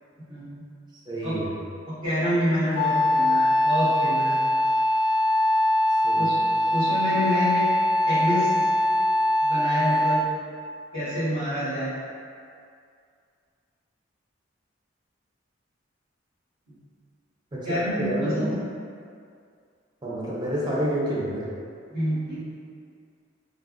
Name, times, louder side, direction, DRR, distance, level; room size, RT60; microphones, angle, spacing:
voice 1, 0.3-0.6 1.2-1.3 1.8-4.4 6.1-6.4 6.7-7.7 8.1-8.5 9.4-10.3 10.9-11.9 16.7-16.8 17.6-18.6 21.9-22.4, equal, 80° right, -19 dB, 1.3 m, -27 dB
voice 2, 1.1-1.5 6.0-6.4 17.5-18.5 20.0-21.5, right 1 dB, 25° right, -6 dB, 0.5 m, -29 dB
Wind instrument woodwind instrument, 2.7-10.4, left 1 dB, 80° left, 0.4 m, -22 dB
3.3 x 2.0 x 2.4 m, 2.3 s
head